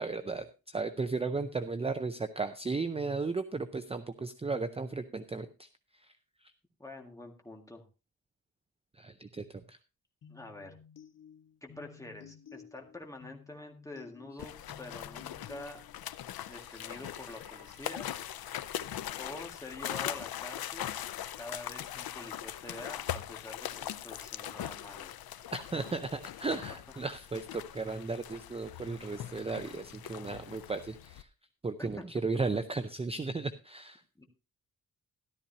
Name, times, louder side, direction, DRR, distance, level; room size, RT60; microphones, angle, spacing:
voice 1, 0.0-6.5 8.9-9.8 25.5-31.3 31.6-34.0, right 3 dB, 15° right, 9 dB, 0.5 m, -35 dB
voice 2, 6.8-7.8 10.3-10.7 11.6-15.8 16.5-18.1 19.2-20.9 21.4-25.1 31.8-32.1 34.2-34.3, left 2 dB, 10° left, 2 dB, 1.8 m, -46 dB
sound 1, 10.2-16.2, left 8 dB, 60° left, 1.2 m, -54 dB
sound 2, 14.4-31.2, left 11 dB, 85° left, 0.6 m, -41 dB
sound 3, 16.0-23.1, right 1 dB, 75° right, 5.2 m, -63 dB
13.5 x 12.5 x 2.7 m, 0.29 s
wide cardioid pair, 170°, 35 cm